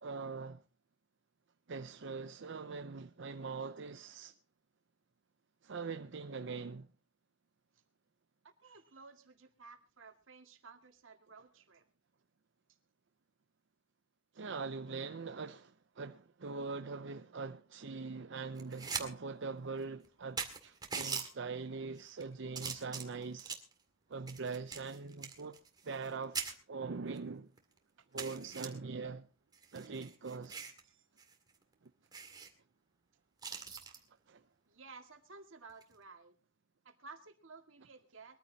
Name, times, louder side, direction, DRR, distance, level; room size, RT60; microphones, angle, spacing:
voice 1, 0.0-0.6 1.7-4.4 5.6-6.9 14.3-23.6 24.1-25.6 25.8-27.5 28.1-29.2 29.7-30.6 31.8-31.9 33.4-33.6 34.3-34.4, right 4 dB, 65° right, 0.6 m, -42 dB
voice 2, 8.4-11.8 28.0-28.1 30.8-31.1 34.7-36.4 36.8-38.4, right 4 dB, 85° right, 2.1 m, -55 dB
sound 1, 18.6-19.1 19.4-19.5 20.0-20.1 20.4-21.3 22.0-22.2 22.5-23.7 24.3-26.1 26.3-26.5 27.2-27.3 27.6-27.7 28.2-28.7 29.5-30.8 31.2-31.3 31.6-31.7 32.1-32.5 33.4-34.0 35.7-35.9, right 5 dB, 20° right, 2.1 m, -41 dB
22.5 x 14.5 x 2.8 m
head